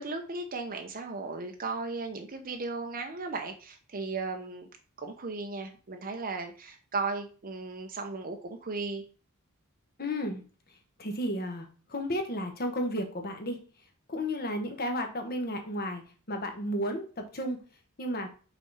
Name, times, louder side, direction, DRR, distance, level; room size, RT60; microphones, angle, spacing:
voice 1, 0.0-4.7 5.0-9.0, right 3 dB, 40° right, 0.7 m, -36 dB
voice 2, 10.0-10.4 11.0-13.6 14.1-16.0 16.3-17.6 18.0-18.3, equal, 45° left, 1.3 m, -33 dB
5.6 x 4.2 x 4.8 m
head